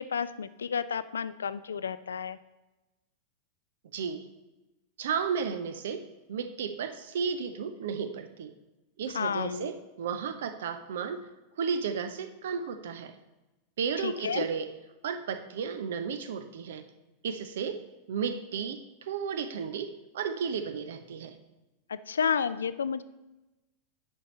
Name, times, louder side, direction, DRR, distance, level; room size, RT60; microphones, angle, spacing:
voice 1, 0.0-2.4 9.1-9.7 14.0-14.5 21.9-23.0, left 6 dB, 70° left, 15 dB, 0.3 m, -31 dB
voice 2, 3.9-4.2 5.0-6.0 6.3-8.5 9.0-11.3 11.6-13.2 13.8-14.7 15.0-16.9 17.2-17.8 18.1-21.4, right 6 dB, 60° right, 10 dB, 0.7 m, -33 dB
9.9 x 5.4 x 4.3 m, 1.0 s
figure-of-eight pair, 90°, 0 cm